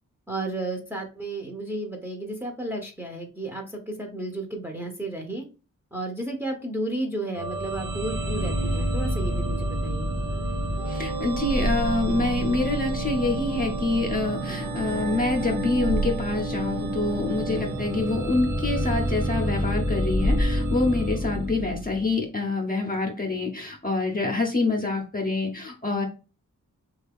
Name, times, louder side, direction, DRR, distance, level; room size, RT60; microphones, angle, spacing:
voice 1, 0.3-5.4 5.9-10.1, right 2 dB, 5° right, 1 dB, 0.8 m, -33 dB
sound 1, 7.3-22.1, right 1 dB, 90° right, 0.9 m, -28 dB
voice 2, 10.9-26.1, left 3 dB, 25° left, 1 dB, 0.7 m, -26 dB
2.8 x 2.4 x 3.4 m, 0.33 s
cardioid pair, 55°, 32 cm